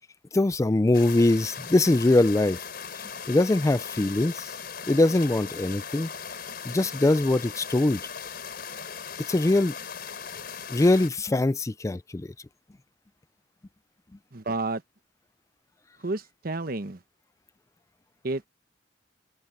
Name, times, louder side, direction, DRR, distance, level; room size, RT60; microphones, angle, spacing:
voice 1, 0.3-2.6 3.3-4.5 4.9-6.1 6.6-8.0 9.3-9.7 10.7-12.3, left 2 dB, 15° left, 0.4 m, -22 dB
sound 1, 0.9-11.1, left 6 dB, 60° left, 4.4 m, -38 dB
voice 2, 14.3-14.8 16.0-17.0 18.2-18.5, right 2 dB, 55° right, 1.1 m, -30 dB
open air
head